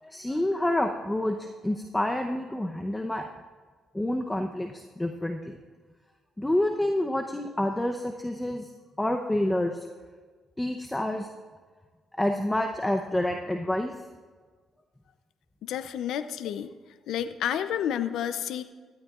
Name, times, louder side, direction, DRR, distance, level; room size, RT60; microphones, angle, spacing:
voice 1, 0.0-3.3 3.9-5.6 6.4-8.7 9.0-9.8 10.6-11.3 12.2-13.9, left 1 dB, 10° left, 4 dB, 0.7 m, -28 dB
voice 2, 15.6-16.7 17.1-18.6, left 9 dB, 80° left, 11 dB, 0.5 m, -30 dB
17.0 x 12.5 x 2.4 m, 1.5 s
cardioid pair, 90°, 0 cm